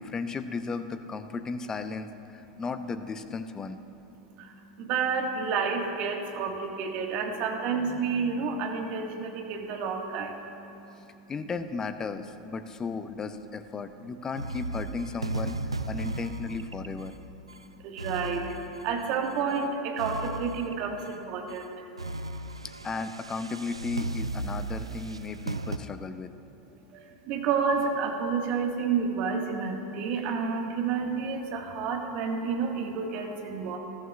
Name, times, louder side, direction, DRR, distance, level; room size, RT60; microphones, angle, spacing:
voice 1, 0.0-3.8 11.3-17.1 22.8-26.3, left 4 dB, 20° left, 11 dB, 0.6 m, -35 dB
voice 2, 4.2-11.3 17.5-21.7 26.9-33.8, right 5 dB, 45° right, 2 dB, 1.6 m, -30 dB
sound 1, 14.3-19.6 20.0-21.1 21.5-21.7 22.0-25.8, right 2 dB, 80° right, 0.4 m, -36 dB
20.5 x 14.0 x 2.4 m, 2.9 s
figure-of-eight pair, 85°, 3 cm